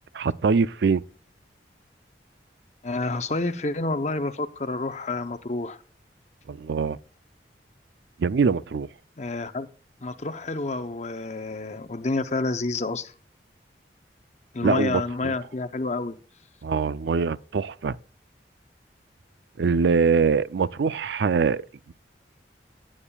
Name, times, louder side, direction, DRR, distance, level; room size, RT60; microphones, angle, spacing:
voice 1, 0.2-1.0 6.5-7.0 8.2-8.9 14.6-15.3 16.6-18.0 19.6-21.9, right 5 dB, 75° right, 0.4 m, -23 dB
voice 2, 2.8-5.8 9.2-9.7 10.0-13.1 14.5-16.2, left 3 dB, 40° left, 0.7 m, -29 dB
17.0 x 8.7 x 2.3 m
head